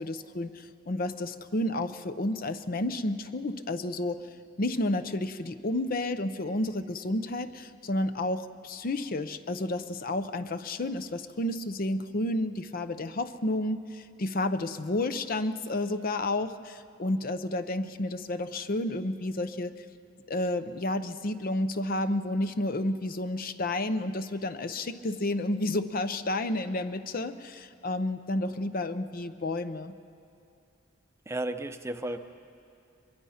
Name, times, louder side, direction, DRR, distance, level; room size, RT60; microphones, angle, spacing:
voice 1, 0.0-4.2 4.6-19.7 20.3-29.9, left 1 dB, 45° left, 11 dB, 0.7 m, -31 dB
voice 2, 31.3-32.2, right 1 dB, 15° right, 8 dB, 0.7 m, -33 dB
24.0 x 22.5 x 5.7 m, 2.6 s
head